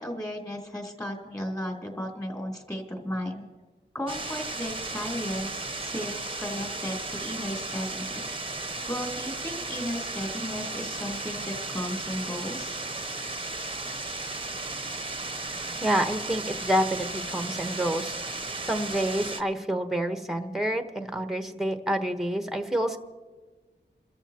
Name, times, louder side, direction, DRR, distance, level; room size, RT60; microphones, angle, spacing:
voice 1, 0.0-3.4 3.9-8.3 8.9-12.8, equal, 20° left, 0 dB, 3.2 m, -35 dB
sound 1, 4.1-19.4, right 2 dB, 25° right, 0.9 m, -35 dB
voice 2, 15.8-18.1 18.7-23.0, right 1 dB, ahead, 7 dB, 1.1 m, -28 dB
29.0 x 14.0 x 2.9 m, 1.3 s
wide cardioid pair, 85°, 19 cm